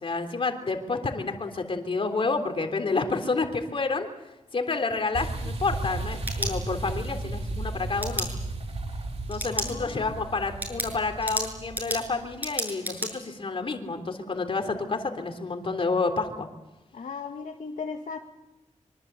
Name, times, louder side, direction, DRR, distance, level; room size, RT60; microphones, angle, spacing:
voice 1, 0.0-4.1 4.5-8.3 9.3-16.5, left 3 dB, 40° left, 5 dB, 3.4 m, -29 dB
sound 1, 5.1-12.4, right 2 dB, 50° right, 3.2 m, -34 dB
sound 2, 6.1-7.1 8.0-8.3 9.3-9.7 10.1-10.2 10.6-13.1, right 1 dB, 15° right, 7.1 m, -32 dB
voice 2, 9.5-10.1 16.9-18.2, left 5 dB, 70° left, 2 dB, 1.9 m, -37 dB
25.5 x 24.5 x 8.3 m, 0.97 s
wide cardioid pair, 165°, 13 cm